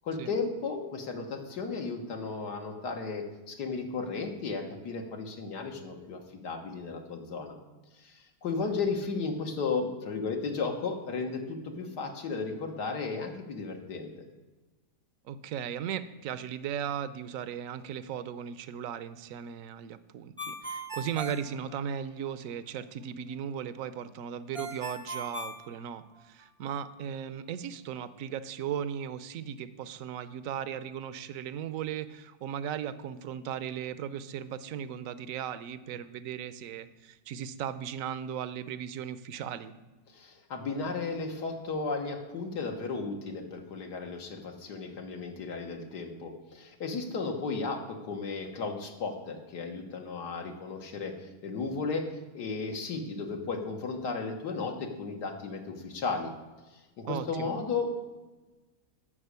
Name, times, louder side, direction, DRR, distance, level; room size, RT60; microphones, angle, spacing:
voice 1, 0.0-7.6 8.0-14.1 40.1-51.1 51.4-52.1 52.3-56.3 57.0-58.2, left 4 dB, 80° left, 3 dB, 2.0 m, -34 dB
voice 2, 15.2-39.7 57.1-57.6, right 8 dB, 65° right, 14 dB, 0.9 m, -37 dB
Ringtone, 20.4-22.3 24.5-26.4, right 1 dB, 5° left, 0.6 m, -39 dB
11.0 x 6.3 x 8.1 m, 1.2 s
omnidirectional pair, 1.8 m